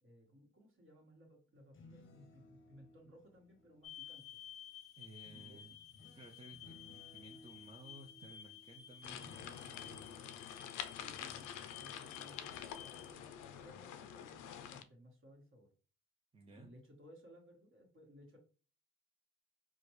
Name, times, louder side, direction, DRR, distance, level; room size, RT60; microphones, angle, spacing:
voice 1, 0.0-4.4 5.3-5.6 10.9-15.7 16.5-18.4, equal, 40° right, 1 dB, 1.5 m, -60 dB
sound 1, 1.6-4.4 5.2-12.2 12.5-12.8, left 1 dB, 40° left, 0.7 m, -62 dB
sound 2, 3.8-13.1, left 11 dB, ahead, 1.3 m, -54 dB
voice 2, 5.0-5.8 6.1-10.2 16.3-16.7, right 2 dB, 20° right, 1 dB, 0.5 m, -57 dB
sound 3, 9.0-14.8, left 9 dB, 90° left, 0.4 m, -47 dB
4.8 x 2.3 x 3.1 m, 0.39 s
cardioid pair, 90°, 30 cm